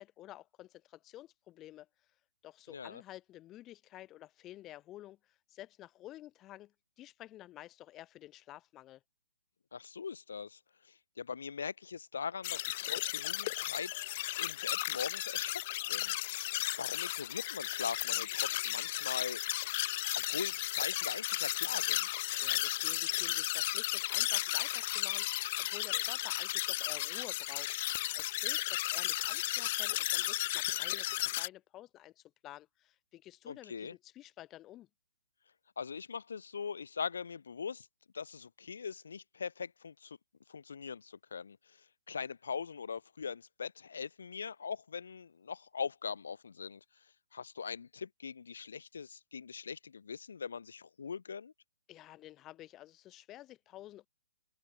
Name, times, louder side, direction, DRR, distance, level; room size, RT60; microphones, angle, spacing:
voice 1, 0.0-1.9 2.4-9.0 22.4-34.9 51.9-54.1, left 14 dB, 15° left, 6.0 m, -51 dB
voice 2, 2.7-3.0 9.7-13.9 14.4-15.6 15.9-16.4 16.8-19.4 20.1-22.2 33.5-33.9 35.8-37.9 38.1-40.2 40.5-46.8 47.3-51.5, left 6 dB, 80° left, 6.4 m, -41 dB
sound 1, 12.4-31.5, left 17 dB, 30° left, 2.5 m, -34 dB
open air
hypercardioid pair, 170°, 0 cm